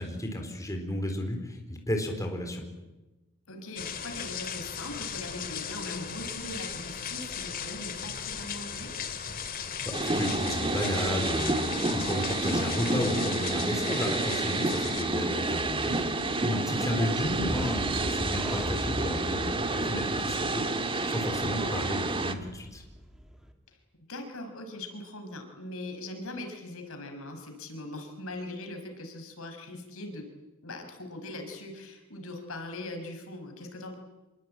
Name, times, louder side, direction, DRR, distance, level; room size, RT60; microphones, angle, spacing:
voice 1, 0.0-2.6 9.8-22.8, left 1 dB, 15° left, 3 dB, 4.2 m, -33 dB
voice 2, 3.5-8.9 16.9-17.1 21.5-21.7 24.1-30.3 30.6-33.9, left 1 dB, 70° left, 5 dB, 5.7 m, -40 dB
sound 1, 3.8-15.0, left 7 dB, 45° left, 2.4 m, -37 dB
sound 2, 9.9-22.3, right 2 dB, 25° right, 1.8 m, -30 dB
sound 3, 15.5-23.5, equal, 5° right, 2.7 m, -41 dB
27.0 x 22.5 x 9.0 m, 1.1 s
head